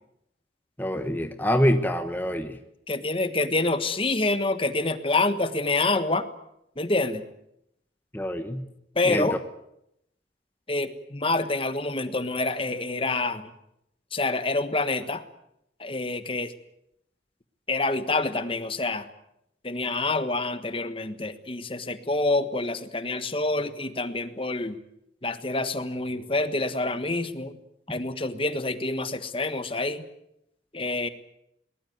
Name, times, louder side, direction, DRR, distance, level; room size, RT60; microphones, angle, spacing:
voice 1, 0.8-2.6 8.1-8.6 9.0-9.3, equal, 10° left, 7 dB, 1.2 m, -25 dB
voice 2, 2.9-6.3 6.8-7.2 8.9-9.4 10.7-13.5 14.1-15.2 15.8-16.5 17.7-19.0 19.6-24.7 25.2-27.6 27.9-30.0 30.7-31.1, left 2 dB, 30° left, 11 dB, 1.4 m, -27 dB
22.0 x 20.0 x 9.4 m, 0.79 s
head